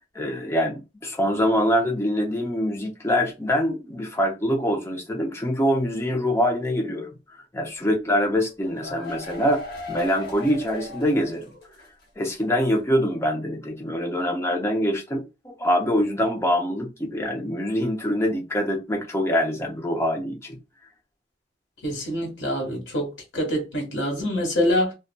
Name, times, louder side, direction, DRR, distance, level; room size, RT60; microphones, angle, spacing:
voice 1, 0.1-7.1 7.5-9.6 9.9-11.4 12.2-15.2 15.6-20.6, equal, 15° left, 0.6 m, -24 dB
sound 1, 8.4-12.0 12.3-12.4 12.8-12.9, left 3 dB, 55° left, 1.1 m, -38 dB
voice 2, 21.8-24.9, equal, 75° left, 1.3 m, -25 dB
2.5 x 2.3 x 2.2 m
head